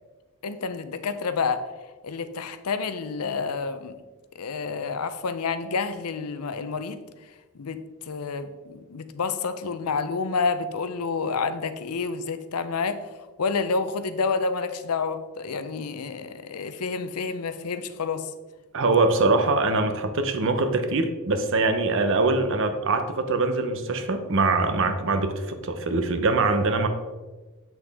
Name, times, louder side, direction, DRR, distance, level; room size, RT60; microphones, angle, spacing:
voice 1, 0.4-1.7 2.0-4.0 4.4-7.0 7.5-13.0 13.4-18.3, left 4 dB, 90° left, 0.6 m, -29 dB
voice 2, 18.7-26.9, right 3 dB, 60° right, 0.8 m, -23 dB
8.0 x 6.1 x 3.5 m
head